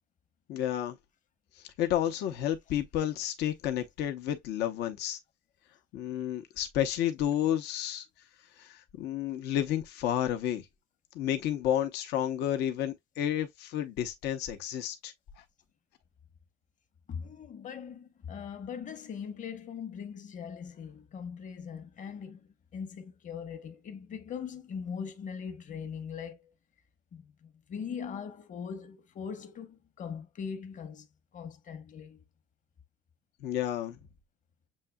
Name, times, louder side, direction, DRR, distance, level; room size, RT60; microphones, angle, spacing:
voice 1, 0.5-1.0 1.8-5.2 5.9-8.0 8.6-10.6 11.1-15.1 33.4-34.0, left 11 dB, 85° left, 0.9 m, -31 dB
voice 2, 17.1-26.5 27.1-31.1 31.3-32.2, left 7 dB, 50° left, 1.1 m, -41 dB
7.4 x 2.8 x 2.2 m
cardioid pair, 110°, 17 cm